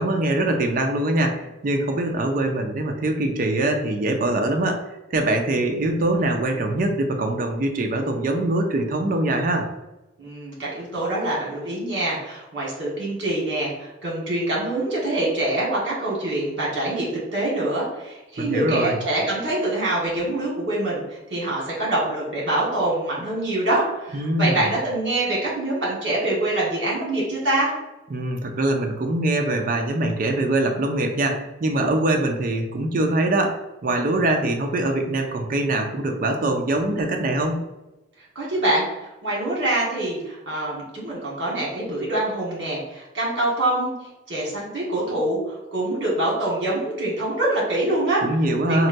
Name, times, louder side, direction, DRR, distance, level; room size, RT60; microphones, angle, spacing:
voice 1, 0.0-9.7 18.4-19.0 24.1-24.7 28.1-37.6 48.2-48.9, right 1 dB, 45° right, 3 dB, 0.4 m, -23 dB
voice 2, 10.2-27.7 38.3-43.9 44.3-48.2 48.7-48.9, right 1 dB, 60° right, -5 dB, 1.3 m, -25 dB
4.1 x 2.2 x 2.6 m, 1.0 s
head